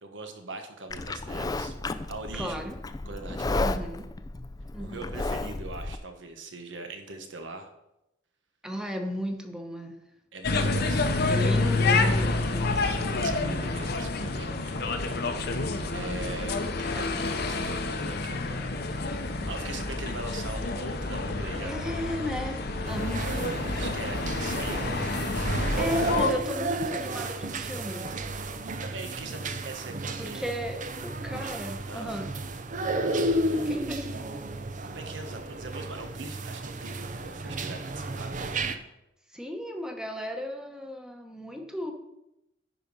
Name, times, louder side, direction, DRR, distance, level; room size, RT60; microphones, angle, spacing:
voice 1, 0.0-1.7 2.1-2.6 3.0-3.6 4.8-7.7 10.3-11.3 13.2-18.8 19.1-21.9 23.7-24.9 28.8-30.5 31.9-32.1 33.0-33.8 34.8-38.3, right 3 dB, 75° right, 6 dB, 1.3 m, -41 dB
Livestock farm animals working animals, 0.9-6.0, left 2 dB, 20° left, 0.4 m, -33 dB
voice 2, 2.3-2.8 3.6-4.0 4.7-5.1 8.6-10.0 11.3-12.8 13.1-13.5 21.6-23.4 25.8-28.1 30.2-32.3 33.5-34.1 39.3-41.9, equal, 5° right, 4 dB, 1.0 m, -35 dB
sound 1, 10.4-26.3, left 3 dB, 60° left, 0.8 m, -28 dB
sound 2, 22.8-38.8, right 2 dB, 45° right, 0.7 m, -32 dB
10.5 x 5.0 x 5.4 m, 0.89 s
head